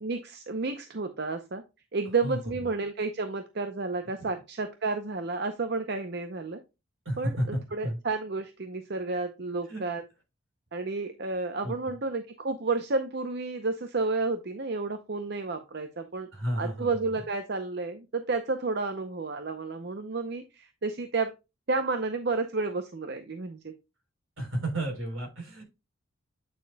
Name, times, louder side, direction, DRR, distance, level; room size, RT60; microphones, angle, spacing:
voice 1, 0.0-1.6 1.9-6.6 7.2-7.3 7.7-10.0 10.7-16.3 16.6-21.3 21.7-23.7, right 3 dB, 50° right, 8 dB, 0.7 m, -31 dB
voice 2, 7.1-8.0 9.7-9.8 11.6-11.9 16.3-17.2 24.4-25.6, right 1 dB, 75° right, 3 dB, 3.8 m, -32 dB
8.8 x 6.6 x 2.2 m, 0.26 s
head